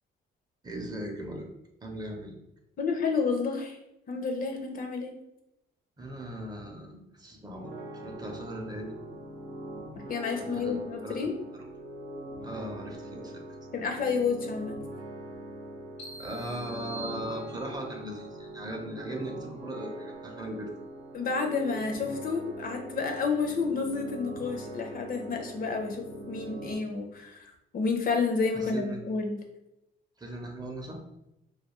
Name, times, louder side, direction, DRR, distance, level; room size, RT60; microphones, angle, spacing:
voice 1, 0.6-1.5 1.8-2.4 6.0-9.0 10.4-11.6 12.4-13.4 16.2-20.7 28.5-29.0 30.2-31.0, right 1 dB, 20° right, 1 dB, 0.5 m, -39 dB
voice 2, 2.8-3.8 4.1-5.1 10.1-11.4 13.7-14.8 21.1-27.4 27.7-29.4, left 4 dB, 45° left, 3 dB, 0.5 m, -30 dB
sound 1, 7.5-26.7, right 1 dB, 80° right, 0.7 m, -42 dB
sound 2, 16.0-17.9, right 2 dB, 85° left, 0.8 m, -45 dB
2.3 x 2.2 x 2.9 m, 0.88 s
cardioid pair, 90°, 20 cm